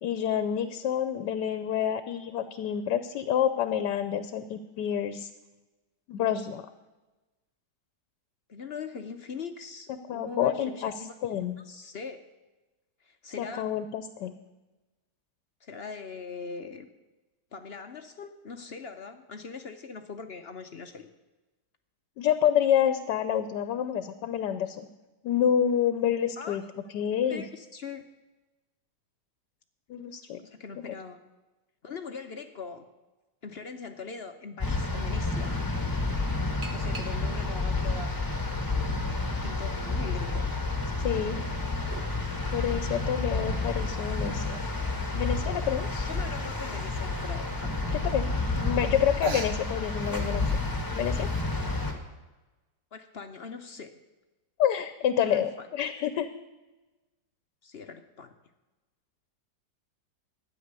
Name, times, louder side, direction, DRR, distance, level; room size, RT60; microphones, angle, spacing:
voice 1, 0.0-5.3 6.1-6.6 9.9-10.9 11.2-11.6 13.4-14.3 22.2-24.9 25.2-26.6 26.9-27.5 29.9-30.4 30.9-31.0 41.0-41.4 42.5-44.6 45.1-46.1 47.9-48.3 48.6-50.6 51.0-51.3 54.6-56.3, left 9 dB, 75° left, 11 dB, 1.3 m, -28 dB
voice 2, 8.5-11.1 11.6-12.2 13.0-13.7 15.6-16.9 17.5-21.1 26.4-26.9 27.3-28.0 30.4-31.2 31.8-32.9 33.4-35.6 36.7-38.1 39.3-40.5 46.0-47.7 52.9-53.9 55.2-55.7 57.6-58.3, left 5 dB, 55° left, 7 dB, 0.7 m, -41 dB
sound 1, 34.6-51.9, left 3 dB, 10° left, 1.6 m, -30 dB
sound 2, 36.6-37.5 38.2-39.2 39.8-39.9 41.1-42.2 43.8-43.9 44.4-44.5 44.7-44.8 45.1-45.5 46.5-46.6 47.1-47.2 48.3-48.4 48.6-48.9 49.2-51.5, right 4 dB, 40° right, 1.2 m, -41 dB
12.5 x 9.7 x 6.7 m, 1.1 s
omnidirectional pair, 1.9 m